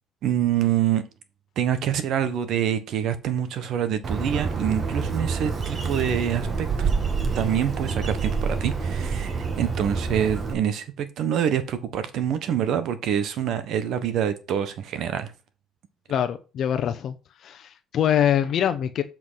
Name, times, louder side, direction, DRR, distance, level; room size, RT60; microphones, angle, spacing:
voice 1, 0.2-1.0 1.6-6.9 7.3-15.3, right 9 dB, 65° right, 1.3 m, -26 dB
Bird, 4.0-10.5, right 5 dB, 40° right, 1.7 m, -27 dB
voice 2, 16.1-17.1 17.4-19.0, left 9 dB, 55° left, 0.8 m, -24 dB
7.6 x 4.6 x 5.7 m
cardioid pair, 100°, 0 cm